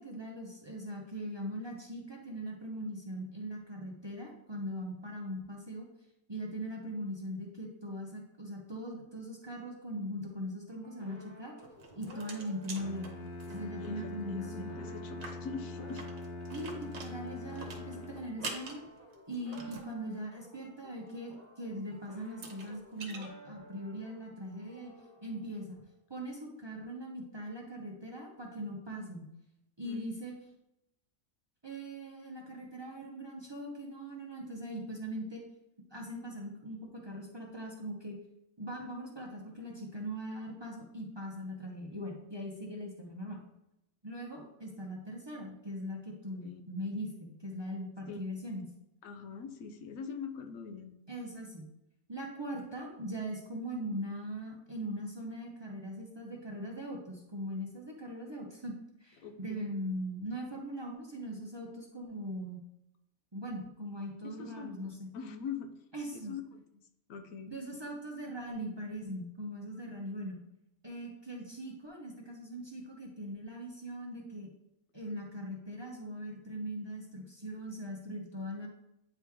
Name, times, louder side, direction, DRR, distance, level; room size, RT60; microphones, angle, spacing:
voice 1, 0.0-5.9 6.3-11.5 12.0-13.2 13.5-14.8 16.5-18.8 19.3-24.9 25.2-25.8 26.1-29.3 29.8-30.3 31.6-35.4 35.9-38.1 38.6-43.4 44.0-48.7 51.1-51.7 52.1-62.6 63.3-65.1 65.9-66.3 67.5-70.4 70.8-74.5 74.9-78.7, equal, 25° right, -1 dB, 0.7 m, -40 dB
sound 1, 10.7-26.0, equal, 20° left, 1.1 m, -55 dB
sound 2, 11.6-13.9 14.2-14.3 14.6-14.7 15.1-19.9 21.7-21.8 22.3-23.3, right 3 dB, 60° right, 1.2 m, -46 dB
Bowed string instrument, 12.8-18.6, left 2 dB, 65° left, 0.8 m, -43 dB
voice 2, 13.7-16.0 29.8-30.0 46.4-46.6 48.1-48.2 49.0-51.0 59.2-59.7 64.2-65.7 66.1-66.8 67.1-67.6, left 6 dB, 90° left, 7 dB, 1.1 m, -43 dB
9.0 x 3.1 x 3.5 m, 0.86 s
omnidirectional pair, 1.4 m